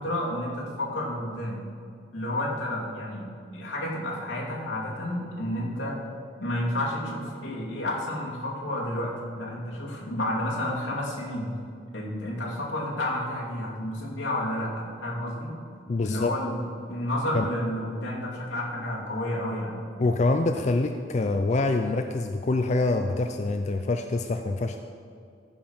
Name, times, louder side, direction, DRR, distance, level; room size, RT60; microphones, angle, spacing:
voice 1, 0.0-1.6 2.1-3.3 3.5-6.1 6.4-11.5 11.9-15.5 16.0-19.8, left 1 dB, 85° left, -5 dB, 2.6 m, -31 dB
voice 2, 15.9-16.3 17.3-17.5 20.0-24.8, left 2 dB, 35° left, 6 dB, 0.4 m, -25 dB
14.5 x 5.4 x 5.6 m, 2.3 s
head